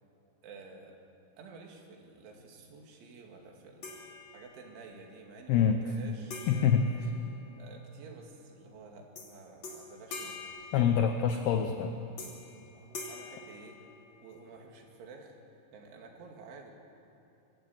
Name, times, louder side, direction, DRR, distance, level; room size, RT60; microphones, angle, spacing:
voice 1, 0.4-1.0 1.4-4.1 4.3-6.9 7.6-10.4 12.7-13.8 14.2-15.4 15.7-16.7, right 4 dB, 75° right, 1 dB, 4.7 m, -51 dB
sound 1, 3.8-4.8 6.3-7.9 9.2-9.3 9.6-11.5 12.2-12.6 12.9-14.4, left 3 dB, 40° left, 3.2 m, -45 dB
voice 2, 6.5-6.8 10.7-11.9, left 8 dB, 80° left, 6 dB, 2.3 m, -25 dB
24.0 x 16.0 x 8.6 m, 2.8 s
omnidirectional pair, 5.7 m